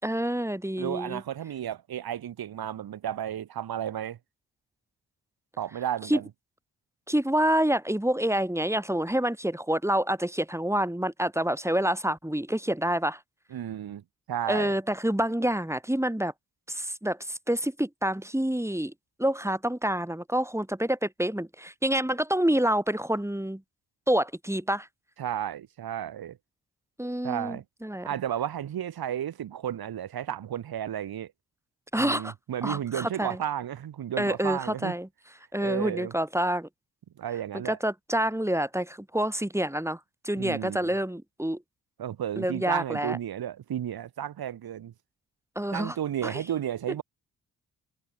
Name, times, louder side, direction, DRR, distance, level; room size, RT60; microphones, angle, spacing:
voice 1, 0.0-1.2 6.1-6.2 7.1-13.2 14.5-16.3 16.7-18.9 19.2-23.6 24.1-24.9 27.0-28.1 31.9-32.3 32.6-33.4 34.2-35.1 35.5-36.7 37.6-41.6 42.4-43.2 45.5-46.0 46.2-46.4, right 1 dB, 5° right, 6.5 m, -27 dB
voice 2, 0.8-4.2 5.6-6.3 13.5-14.7 25.2-26.4 27.2-27.6 28.0-31.3 32.0-34.9 35.6-36.1 37.2-37.8 40.4-40.9 42.0-44.9 45.7-47.0, right 10 dB, 70° right, 3.0 m, -33 dB
supercardioid pair, 45°, 38 cm